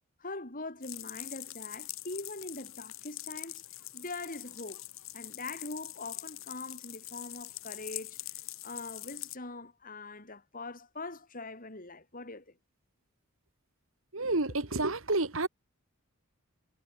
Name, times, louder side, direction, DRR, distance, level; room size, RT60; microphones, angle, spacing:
voice 1, 0.2-3.6 3.9-4.8 5.1-8.2 8.6-12.6, left 2 dB, 40° left, 4.2 m, -42 dB
sound 1, 0.8-9.4, left 16 dB, 65° left, 4.9 m, -44 dB
voice 2, 14.1-15.5, right 2 dB, 65° right, 2.1 m, -29 dB
head